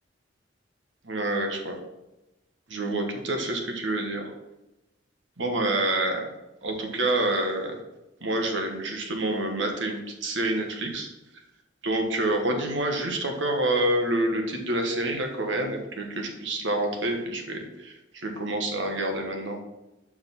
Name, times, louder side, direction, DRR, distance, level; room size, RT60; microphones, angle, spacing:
voice 1, 1.0-1.8 2.7-4.2 5.4-6.3 6.6-7.7 8.2-11.1 11.8-19.6, right 1 dB, 90° right, 3 dB, 1.4 m, -27 dB
6.0 x 4.9 x 5.8 m, 0.97 s
head